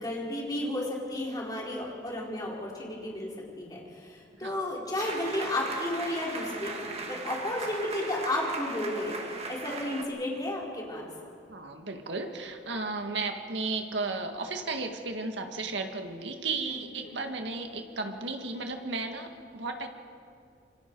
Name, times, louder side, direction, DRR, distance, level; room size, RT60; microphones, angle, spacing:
voice 1, 0.0-3.3 3.6-11.1 17.0-17.2, left 1 dB, 20° left, -3 dB, 4.3 m, -33 dB
sound 1, 5.0-10.0, right 3 dB, 35° right, 1.8 m, -38 dB
voice 2, 11.5-19.9, right 3 dB, 75° right, 4 dB, 1.9 m, -34 dB
27.0 x 24.5 x 4.7 m, 2.4 s
head